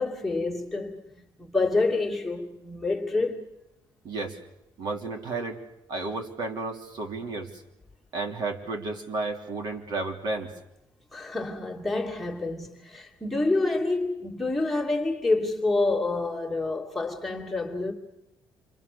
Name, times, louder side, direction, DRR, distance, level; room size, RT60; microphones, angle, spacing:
voice 1, 0.0-3.5 11.1-17.9, left 3 dB, ahead, 2.6 m, -28 dB
voice 2, 4.0-4.4 4.8-5.6 5.9-7.6 8.1-10.5, right 3 dB, 55° right, 3.1 m, -32 dB
28.5 x 24.5 x 6.9 m
cardioid pair, 145°, 8 cm